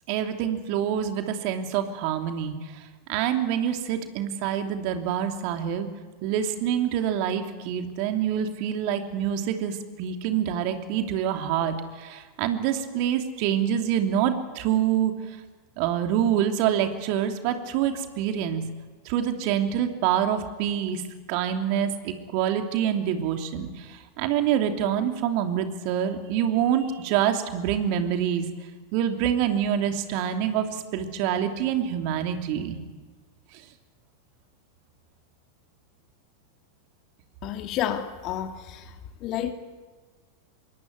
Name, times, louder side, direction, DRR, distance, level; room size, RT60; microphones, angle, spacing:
voice 1, 0.1-5.9 6.2-15.1 15.8-18.6 19.0-21.0 21.3-28.5 28.9-32.8, right 9 dB, 45° right, 6 dB, 3.0 m, -26 dB
voice 2, 37.4-39.0 39.2-39.5, left 10 dB, 35° left, 7 dB, 2.4 m, -30 dB
27.0 x 22.5 x 9.6 m, 1.3 s
figure-of-eight pair, 90°, 0 cm